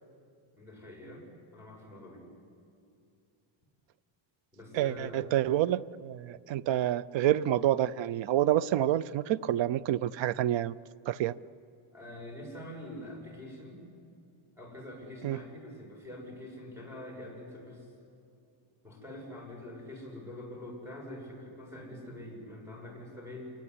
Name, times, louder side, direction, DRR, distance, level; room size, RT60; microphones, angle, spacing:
voice 1, 0.6-1.3 1.5-2.3 4.5-5.3 11.9-13.8 14.6-17.9 18.8-23.5, left 1 dB, 5° right, 7.1 m, -45 dB
voice 2, 4.7-10.7 11.1-11.3 15.2-15.4, right 12 dB, 60° right, 0.7 m, -28 dB
26.5 x 19.5 x 9.9 m
cardioid pair, 150°, 50 cm